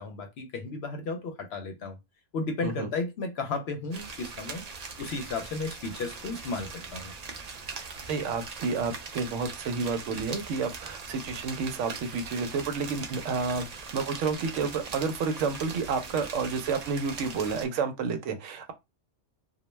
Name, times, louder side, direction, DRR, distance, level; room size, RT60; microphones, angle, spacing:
voice 1, 0.0-2.0 2.3-4.6 5.0-7.1, left 3 dB, 65° left, 0.8 m, -34 dB
sound 1, 3.9-17.7, right 5 dB, 70° right, 0.3 m, -41 dB
voice 2, 7.8-18.7, right 5 dB, 90° right, 0.9 m, -30 dB
2.3 x 2.1 x 3.1 m
omnidirectional pair, 1.2 m